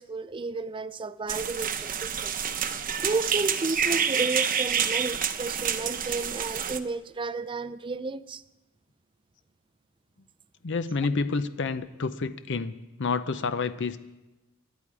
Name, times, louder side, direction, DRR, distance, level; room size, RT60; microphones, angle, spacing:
voice 1, 0.0-2.3 3.0-8.4, right 3 dB, 25° right, 0.4 m, -32 dB
sound 1, 1.3-6.8, right 8 dB, 40° right, 0.8 m, -28 dB
voice 2, 10.6-14.0, left 4 dB, 60° left, 0.7 m, -29 dB
27.0 x 11.0 x 4.8 m
head